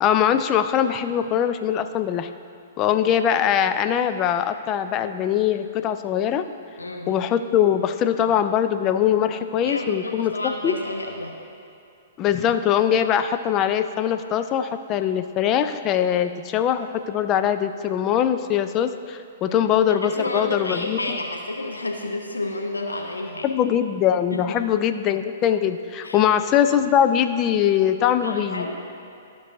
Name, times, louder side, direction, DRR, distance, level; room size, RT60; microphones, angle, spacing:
voice 1, 0.0-2.3 2.8-6.4 7.1-10.7 12.2-21.2 23.4-28.7, left 9 dB, 30° left, 9 dB, 0.4 m, -22 dB
voice 2, 6.8-7.1 9.6-11.3 19.5-19.6 19.9-23.5 24.3-24.6 26.0-26.2 28.2-28.8, left 2 dB, 75° left, 2 dB, 0.8 m, -30 dB
13.5 x 5.4 x 2.6 m, 2.6 s
figure-of-eight pair, 110°, 0 cm